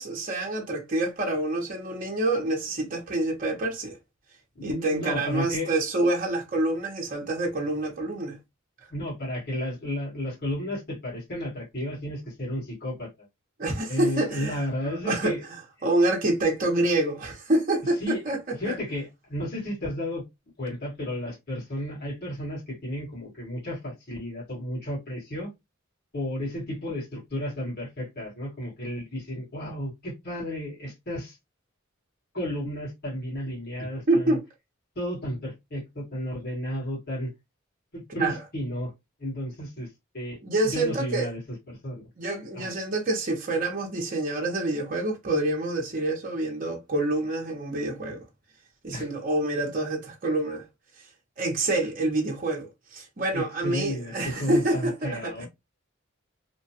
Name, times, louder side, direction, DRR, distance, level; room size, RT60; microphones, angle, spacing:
voice 1, 0.0-4.0 4.6-8.4 13.6-15.4 15.8-18.7 34.1-34.4 38.2-38.4 40.4-41.3 42.2-48.2 48.8-50.6 51.4-55.5, right 2 dB, 40° right, 0.8 m, -27 dB
voice 2, 4.5-5.7 8.9-13.1 13.9-15.4 18.0-20.2 20.6-25.5 26.1-31.4 32.3-34.4 34.9-37.3 37.9-38.9 39.2-39.9 40.1-41.4 41.7-42.0 42.5-42.7 48.9-49.1 53.3-55.5, equal, 50° left, 1.6 m, -33 dB
3.0 x 2.2 x 2.7 m
head